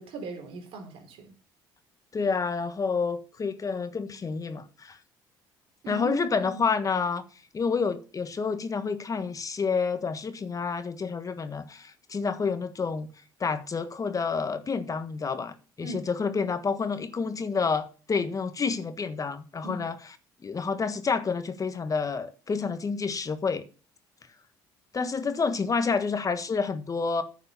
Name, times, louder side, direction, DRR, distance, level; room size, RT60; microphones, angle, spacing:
voice 1, 0.0-1.3 5.8-6.7 15.8-16.1 19.6-19.9, right 1 dB, 70° right, 3.7 m, -38 dB
voice 2, 2.1-5.0 5.9-7.2 7.5-13.1 13.4-19.9 20.4-23.6 24.9-27.2, left 5 dB, 35° left, 1.5 m, -29 dB
9.9 x 6.6 x 7.0 m
hypercardioid pair, 60°, 10 cm